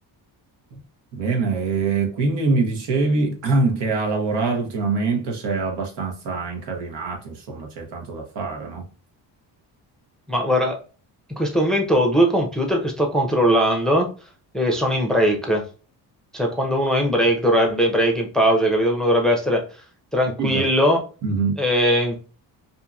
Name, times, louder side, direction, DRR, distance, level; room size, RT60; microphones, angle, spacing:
voice 1, 1.1-8.8 20.4-20.6 21.2-21.6, right 3 dB, 70° right, 2 dB, 1.0 m, -24 dB
voice 2, 10.3-10.8 11.3-14.1 14.5-15.6 16.3-19.6 20.1-21.0 21.6-22.2, equal, ahead, 1 dB, 0.6 m, -20 dB
2.7 x 2.6 x 2.3 m, 0.36 s
cardioid pair, 90°, 43 cm